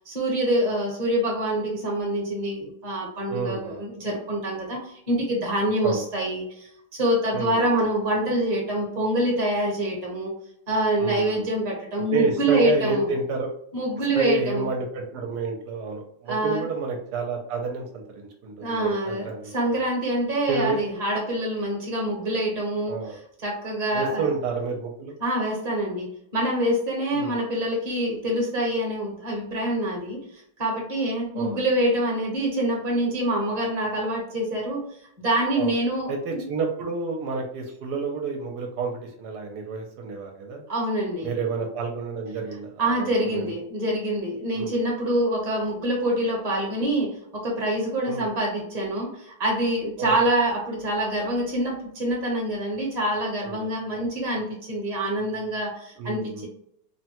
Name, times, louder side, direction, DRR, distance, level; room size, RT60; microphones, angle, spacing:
voice 1, 0.1-10.3 10.7-13.1 13.7-14.7 16.3-16.7 18.6-22.9 23.4-24.2 25.2-30.2 30.6-34.8 35.2-36.4 40.7-41.3 42.8-56.5, right 1 dB, 30° right, -1 dB, 1.0 m, -26 dB
voice 2, 3.3-3.8 5.8-6.0 7.3-7.6 11.0-11.4 12.1-13.5 14.2-19.5 20.5-20.8 22.8-23.2 23.9-25.1 27.1-27.4 31.3-31.6 35.6-35.7 36.1-40.6 41.2-43.5 44.5-44.7 48.1-48.3 50.0-50.1 53.4-53.6 53.9-54.1 56.0-56.5, right 4 dB, 80° right, 2 dB, 1.1 m, -29 dB
3.4 x 2.1 x 2.9 m, 0.70 s
omnidirectional pair, 1.8 m